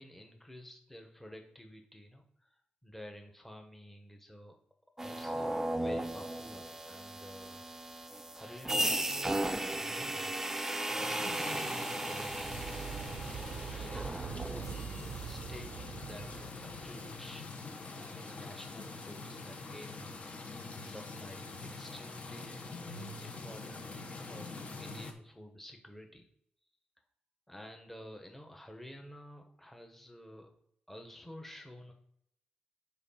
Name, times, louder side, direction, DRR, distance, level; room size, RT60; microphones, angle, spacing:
voice 1, 0.0-4.6 5.0-8.0 8.3-10.4 10.7-12.9 13.7-14.2 14.5-17.5 17.8-20.5 20.8-22.7 23.2-26.2 27.5-30.5 30.9-31.9, equal, 5° left, 3 dB, 1.3 m, -51 dB
sound 1, 5.0-15.1, right 1 dB, 10° right, 0.6 m, -36 dB
sound 2, 11.0-25.1, left 3 dB, 40° left, 1.2 m, -45 dB
sound 3, 12.1-17.3, right 8 dB, 70° right, 0.5 m, -44 dB
8.1 x 4.6 x 5.8 m, 0.70 s
cardioid pair, 110°, 3 cm